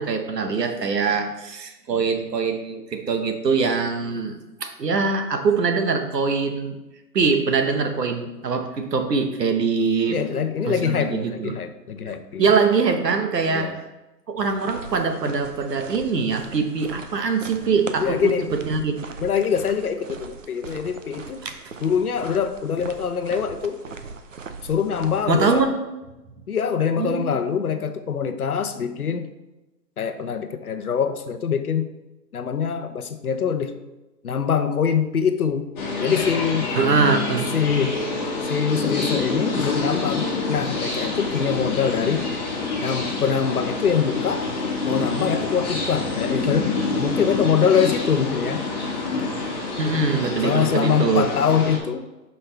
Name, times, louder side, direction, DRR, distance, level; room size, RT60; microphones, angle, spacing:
voice 1, 0.0-4.3 4.6-6.8 7.1-10.2 10.6-11.5 12.4-13.7 14.3-19.0 21.4-21.6 25.3-25.8 27.0-27.3 36.7-37.5 49.8-51.3, right 5 dB, 75° right, 5 dB, 1.4 m, -23 dB
voice 2, 10.1-12.4 13.5-13.8 18.0-18.4 19.2-21.4 21.8-23.8 24.6-25.7 26.5-29.3 30.0-31.9 32.3-33.8 34.2-35.7 36.0-36.7 37.5-38.0 38.4-42.3 42.8-44.5 44.8-48.6 50.4-52.1, left 7 dB, 60° left, 8 dB, 0.9 m, -24 dB
sound 1, 14.4-25.6, right 5 dB, 50° right, 0.7 m, -40 dB
sound 2, 35.8-51.8, left 3 dB, 25° left, 1.8 m, -27 dB
10.0 x 5.5 x 3.4 m, 1.0 s
hypercardioid pair, 170°, 50 cm